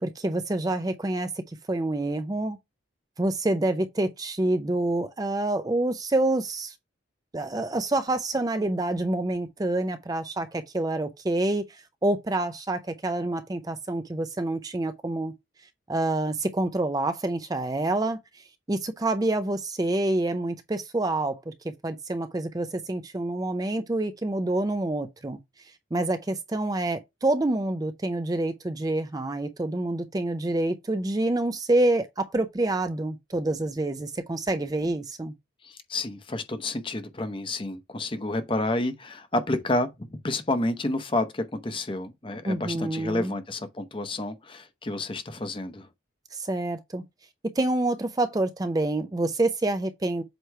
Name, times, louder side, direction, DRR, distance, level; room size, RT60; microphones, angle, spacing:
voice 1, 0.0-2.6 3.2-6.7 7.3-15.3 15.9-25.4 25.9-35.3 42.4-43.3 46.3-47.0 47.6-50.2, right 2 dB, 20° right, 0.4 m, -27 dB
voice 2, 35.6-45.9, left 2 dB, 25° left, 0.8 m, -30 dB
7.9 x 3.0 x 4.6 m
head